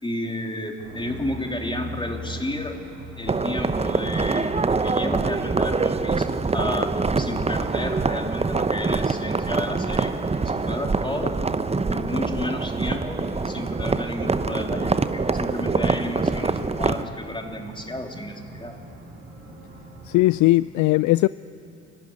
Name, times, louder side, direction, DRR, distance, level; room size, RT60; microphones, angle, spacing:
voice 1, 0.0-2.7 3.2-10.1 10.4-11.3 11.9-18.7, left 1 dB, 15° left, 3.4 m, -32 dB
sound 1, 0.8-20.4, right 1 dB, 75° right, 3.7 m, -42 dB
sound 2, 3.3-17.0, right 4 dB, 15° right, 0.9 m, -25 dB
voice 2, 20.1-21.3, left 18 dB, 55° left, 0.4 m, -18 dB
28.0 x 12.0 x 9.9 m
hypercardioid pair, 50°, 36 cm